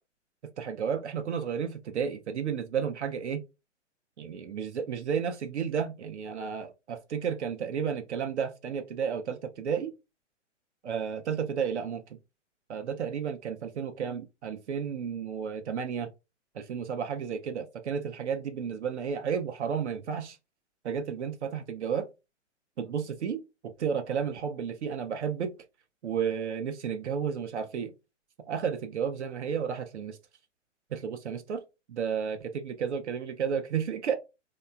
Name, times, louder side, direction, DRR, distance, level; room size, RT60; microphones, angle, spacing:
voice 1, 0.6-3.4 4.2-9.9 10.8-12.0 12.7-16.1 16.5-20.4 20.8-22.1 22.8-25.5 26.0-27.9 28.5-30.2 30.9-31.6 31.9-34.1, right 7 dB, 65° right, 0.5 m, -32 dB
2.8 x 2.2 x 2.2 m
figure-of-eight pair, 120°, 37 cm